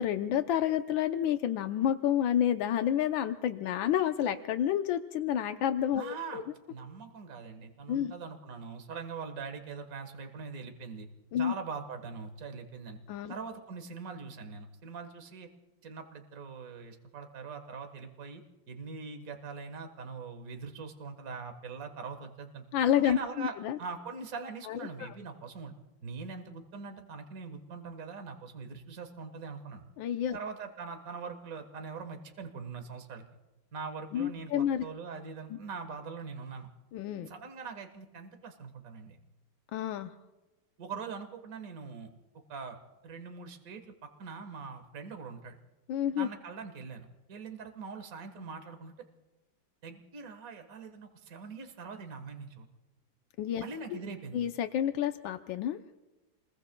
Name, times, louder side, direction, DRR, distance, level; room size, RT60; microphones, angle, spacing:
voice 1, 0.0-6.4 7.9-8.1 11.3-11.5 13.1-13.3 22.7-23.8 24.7-25.1 30.0-30.4 34.1-34.8 35.5-35.6 36.9-37.3 39.7-40.1 45.9-46.3 53.4-53.6 53.9-54.0 54.3-55.8, left 10 dB, 85° left, 7 dB, 1.5 m, -29 dB
voice 2, 6.0-6.4 6.7-11.1 11.4-13.0 13.3-15.5 15.8-18.4 18.7-22.6 23.0-25.7 26.0-29.8 30.3-33.2 33.7-36.7 37.3-39.2 40.8-42.1 42.5-42.8 43.0-45.6 46.2-48.9 49.8-52.7 53.6-54.4, right 5 dB, 50° right, 6 dB, 1.8 m, -42 dB
28.5 x 21.5 x 2.2 m, 1.1 s
omnidirectional pair, 2.1 m